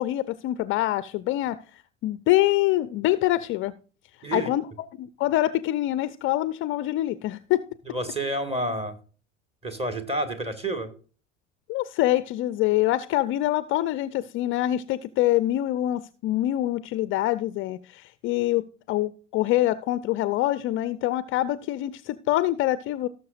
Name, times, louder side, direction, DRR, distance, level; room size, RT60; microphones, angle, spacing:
voice 1, 0.0-3.7 4.3-4.6 5.0-7.6 11.7-23.1, left 15 dB, 35° left, 15 dB, 0.5 m, -25 dB
voice 2, 7.9-9.0 9.6-10.9, right 1 dB, 15° right, 9 dB, 1.9 m, -29 dB
18.0 x 6.7 x 2.5 m, 0.38 s
figure-of-eight pair, 75°, 37 cm